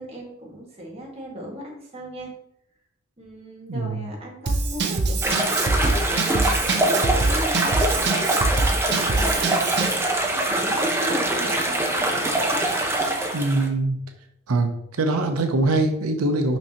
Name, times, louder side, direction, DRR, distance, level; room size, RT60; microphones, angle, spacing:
voice 1, 0.0-2.3 3.2-10.0 10.3-12.1, equal, 30° right, -2 dB, 1.6 m, -37 dB
voice 2, 3.7-4.0 13.3-14.0 14.5-16.6, right 2 dB, 90° right, 6 dB, 0.7 m, -23 dB
Drum kit / Drum, 4.5-10.0, right 3 dB, 50° right, 0.6 m, -24 dB
sound 1, 5.2-13.7, right 1 dB, 10° right, 0.7 m, -23 dB
5.9 x 5.4 x 2.9 m, 0.75 s
head